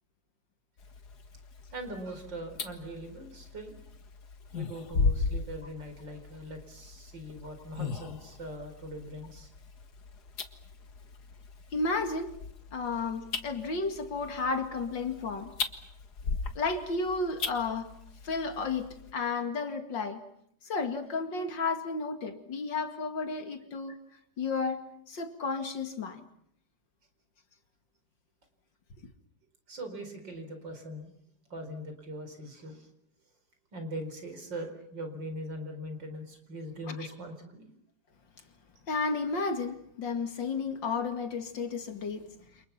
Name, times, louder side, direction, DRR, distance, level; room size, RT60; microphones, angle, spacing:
sound 1, 0.8-19.1, left 4 dB, 60° left, 2.3 m, -38 dB
voice 1, 1.7-3.8 4.5-9.5 29.7-31.1 31.5-32.9 33.7-37.7, right 1 dB, 80° right, 5.2 m, -41 dB
voice 2, 11.7-12.4 12.7-15.5 16.6-17.9 18.2-20.2 20.6-24.0 24.4-26.2 36.9-37.1 38.9-42.3, left 4 dB, 85° left, 3.0 m, -32 dB
29.0 x 28.5 x 5.9 m
omnidirectional pair, 1.9 m